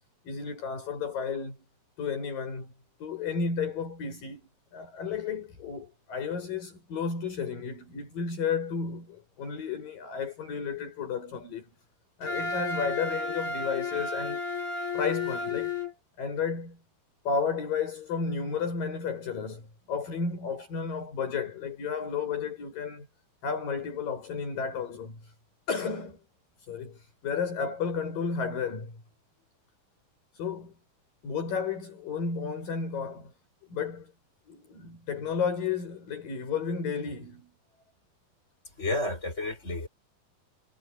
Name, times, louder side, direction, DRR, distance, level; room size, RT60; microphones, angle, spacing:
voice 1, 0.3-1.6 2.0-2.7 3.0-11.7 12.2-14.4 14.9-15.7 16.2-16.8 17.3-23.1 23.4-25.3 25.7-26.2 26.7-29.0 30.3-30.7 31.2-33.3 33.7-34.1 34.5-37.5, left 5 dB, 60° left, 8.9 m, -32 dB
Wind instrument woodwind instrument, 12.2-15.9, left 4 dB, 75° left, 8.8 m, -32 dB
voice 2, 38.8-39.9, left 2 dB, 15° left, 6.7 m, -31 dB
omnidirectional pair, 4.6 m